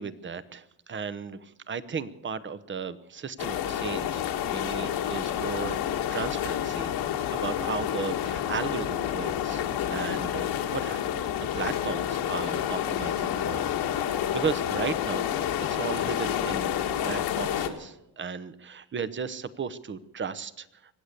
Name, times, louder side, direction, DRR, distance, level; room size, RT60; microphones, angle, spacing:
voice 1, 0.0-5.8 6.1-6.9 7.3-9.6 9.9-11.0 11.4-13.7 14.0-15.3 15.7-16.8 17.0-20.7, right 6 dB, 30° right, 15 dB, 0.9 m, -35 dB
sound 1, 3.4-17.7, left 10 dB, 80° left, 1.7 m, -29 dB
24.5 x 8.7 x 6.7 m, 0.86 s
cardioid pair, 95°, 39 cm